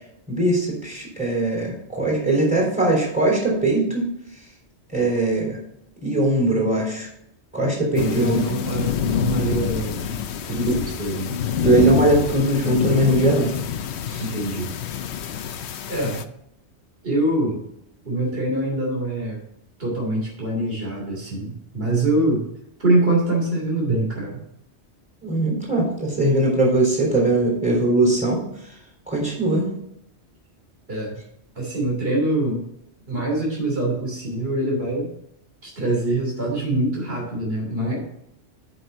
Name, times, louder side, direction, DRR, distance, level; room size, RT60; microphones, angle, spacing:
voice 1, 0.3-4.1 4.9-5.6 6.0-7.1 7.5-8.4 10.7-10.8 11.6-13.6 14.1-14.2 25.2-28.4 29.1-29.7, right 1 dB, 5° right, -2 dB, 3.6 m, -20 dB
voice 2, 7.9-10.1 10.5-11.4 14.2-14.7 15.9-16.2 17.0-17.6 18.0-19.4 19.8-22.4 22.8-24.4 30.9-31.2 31.6-32.6 33.1-35.1 35.6-38.0, right 1 dB, 60° right, -3 dB, 3.4 m, -24 dB
sound 1, 8.0-16.2, left 9 dB, 75° left, 0.9 m, -27 dB
7.8 x 6.0 x 5.3 m, 0.78 s
omnidirectional pair, 1.2 m